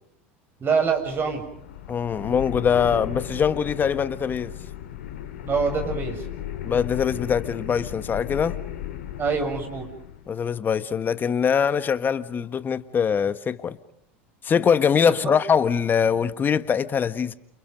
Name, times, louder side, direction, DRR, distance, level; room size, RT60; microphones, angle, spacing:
voice 1, 0.6-1.4 5.4-6.2 9.2-9.9 15.2-15.3, right 5 dB, 30° right, 7.0 m, -25 dB
sound 1, 0.8-10.3, left 11 dB, 80° left, 3.9 m, -35 dB
voice 2, 1.9-4.5 6.6-8.6 10.3-13.8 14.4-17.3, left 7 dB, 30° left, 1.5 m, -23 dB
29.0 x 29.0 x 5.3 m
hypercardioid pair, 90°, 7 cm